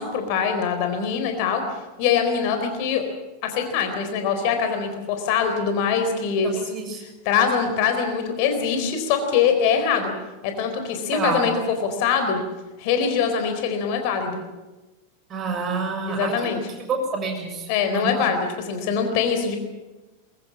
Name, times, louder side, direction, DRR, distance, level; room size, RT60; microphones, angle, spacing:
voice 1, 0.0-1.6 2.0-3.0 3.4-6.6 7.0-10.1 10.4-12.4 12.8-14.4 16.1-16.6 17.7-19.6, left 6 dB, 45° left, 6 dB, 4.1 m, -23 dB
voice 2, 6.4-7.0 11.1-11.5 15.3-16.6 16.9-17.7 17.9-18.3, right 4 dB, 25° right, 3 dB, 7.0 m, -28 dB
22.5 x 22.5 x 7.5 m, 1.1 s
figure-of-eight pair, 90°, 0 cm